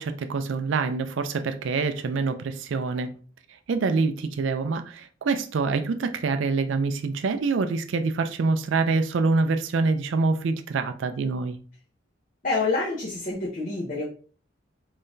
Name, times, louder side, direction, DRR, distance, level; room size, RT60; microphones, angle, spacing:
voice 1, 0.0-3.1 3.7-11.6, right 4 dB, 75° right, 0.4 m, -25 dB
voice 2, 12.4-14.0, left 3 dB, 40° left, 0.8 m, -27 dB
3.7 x 3.2 x 2.6 m
head